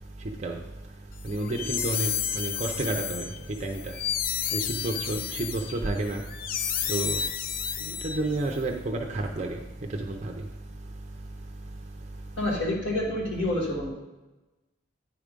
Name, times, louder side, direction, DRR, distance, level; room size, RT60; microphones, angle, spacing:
voice 1, 1.2-3.3 3.6-3.9 4.5-6.2 6.9-7.2 7.9-9.6 9.9-10.3, right 2 dB, 35° right, 2 dB, 0.6 m, -30 dB
sound 1, 1.3-8.5, left 8 dB, 45° left, 0.4 m, -31 dB
voice 2, 12.4-13.9, left 1 dB, 65° left, -2 dB, 1.5 m, -28 dB
9.7 x 4.9 x 5.1 m, 1.1 s
head